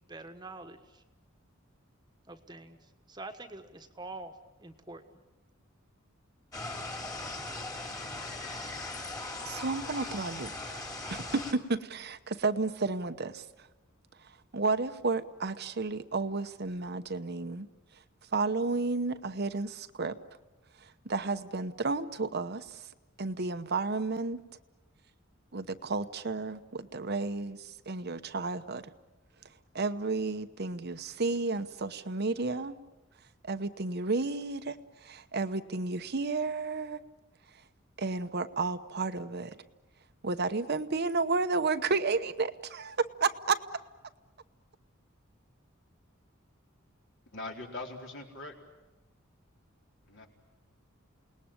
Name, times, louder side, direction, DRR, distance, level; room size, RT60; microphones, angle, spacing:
voice 1, 0.1-1.0 2.3-2.8 3.1-4.3 4.6-5.0, right 2 dB, 20° right, 7 dB, 1.4 m, -45 dB
sound 1, 6.5-11.5, left 2 dB, 20° left, 2.7 m, -39 dB
voice 2, 9.4-10.8 11.1-13.4 14.5-17.7 18.3-20.2 21.0-22.8 23.2-24.4 25.5-28.9 29.7-32.8 33.4-37.0 38.0-39.6 40.2-43.6, right 3 dB, 50° right, 9 dB, 1.0 m, -32 dB
voice 3, 47.3-48.6 50.0-50.3, left 2 dB, 60° left, 1 dB, 4.3 m, -41 dB
29.0 x 19.5 x 8.9 m, 1.1 s
head